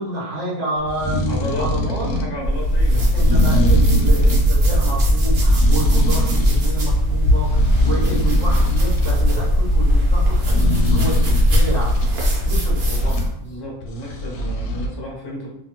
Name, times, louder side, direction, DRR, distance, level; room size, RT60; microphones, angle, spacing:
voice 1, 0.0-2.1 3.1-12.0 12.4-13.2, right 1 dB, 65° right, -6 dB, 1.2 m, -29 dB
sound 1, 0.8-2.4 3.1-4.5 5.2-6.7 7.1-9.2 10.3-12.1 12.8-13.3 13.8-14.9, left 2 dB, 70° left, 0.8 m, -24 dB
voice 2, 1.3-3.2 12.4-12.5 13.4-15.5, left 1 dB, 30° left, -3 dB, 0.4 m, -32 dB
sound 2, 2.4-13.3, equal, 85° right, 1.3 m, -17 dB
2.7 x 2.3 x 2.9 m, 0.78 s
omnidirectional pair, 1.5 m